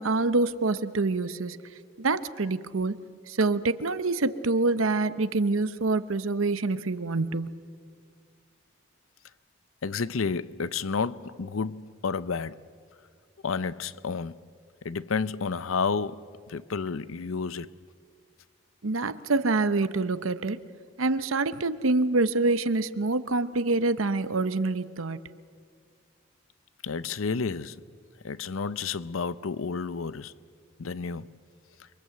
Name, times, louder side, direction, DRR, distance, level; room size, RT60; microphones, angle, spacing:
voice 1, 0.0-1.6 2.0-7.6 18.8-20.6 21.0-25.2, right 3 dB, 85° right, 0.9 m, -26 dB
voice 2, 9.8-12.6 13.4-14.4 14.8-17.7 26.8-27.8 28.2-30.3 30.8-31.3, left 5 dB, 85° left, 0.7 m, -31 dB
29.0 x 23.0 x 7.9 m
head